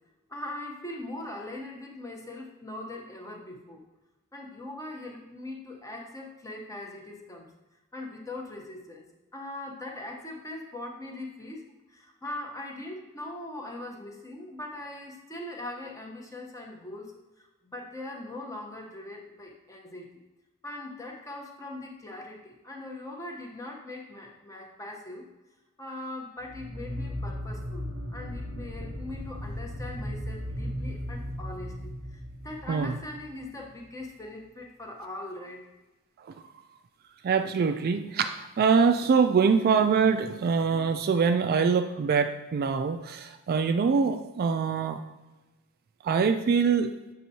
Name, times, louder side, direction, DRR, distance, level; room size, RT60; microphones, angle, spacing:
voice 1, 0.3-3.8 4.3-7.5 7.9-9.0 9.3-20.1 20.6-25.3 25.8-35.7, left 1 dB, 15° left, 0 dB, 0.8 m, -41 dB
sound 1, 26.4-33.7, equal, 20° right, 1.1 m, -36 dB
voice 2, 37.2-45.0 46.0-46.9, right 5 dB, 45° right, 7 dB, 0.3 m, -24 dB
7.6 x 5.3 x 2.8 m, 1.1 s
head